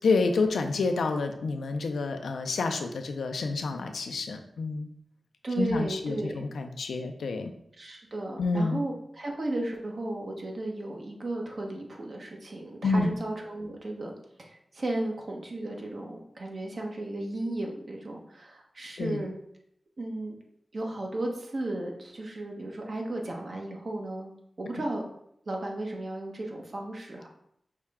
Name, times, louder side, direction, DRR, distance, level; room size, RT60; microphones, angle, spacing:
voice 1, 0.0-4.9 5.6-7.5 8.4-8.8 12.8-13.1 19.0-19.2, left 3 dB, 90° left, 6 dB, 0.4 m, -28 dB
voice 2, 5.4-6.4 7.8-19.3 20.0-20.3 20.7-24.3 24.6-25.0 25.5-27.3, right 1 dB, 60° right, 0 dB, 0.9 m, -34 dB
5.6 x 2.2 x 3.5 m, 0.73 s
cardioid pair, 45°, 0 cm